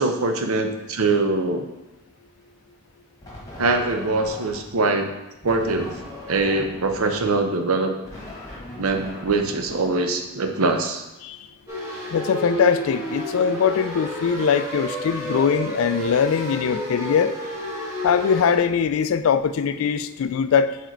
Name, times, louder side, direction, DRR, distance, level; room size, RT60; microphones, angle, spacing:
voice 1, 0.0-1.7 3.6-5.1 5.4-6.0 6.3-8.0 8.8-11.0, right 3 dB, 75° right, 6 dB, 0.7 m, -23 dB
sound 1, 3.2-4.8 5.4-10.6, left 1 dB, 15° left, 1.4 m, -40 dB
sound 2, 11.7-18.6, equal, 15° right, 1.4 m, -30 dB
voice 2, 12.1-17.3 18.0-20.8, left 7 dB, 65° left, 12 dB, 0.3 m, -21 dB
4.7 x 4.4 x 4.5 m, 0.97 s
head